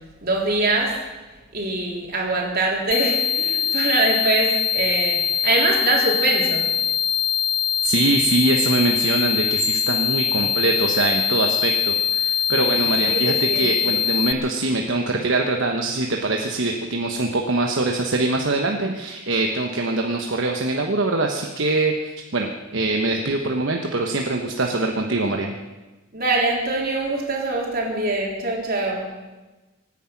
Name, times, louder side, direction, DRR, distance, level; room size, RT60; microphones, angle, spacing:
voice 1, 0.2-1.0 1.5-5.2 5.4-6.7 13.1-13.7 26.1-29.0, right 2 dB, 45° right, -2 dB, 3.7 m, -23 dB
sound 1, 2.9-14.3, left 8 dB, 50° left, 0.7 m, -22 dB
voice 2, 7.8-25.5, right 2 dB, 65° right, 2 dB, 1.1 m, -23 dB
24.5 x 9.9 x 5.9 m, 1.2 s
head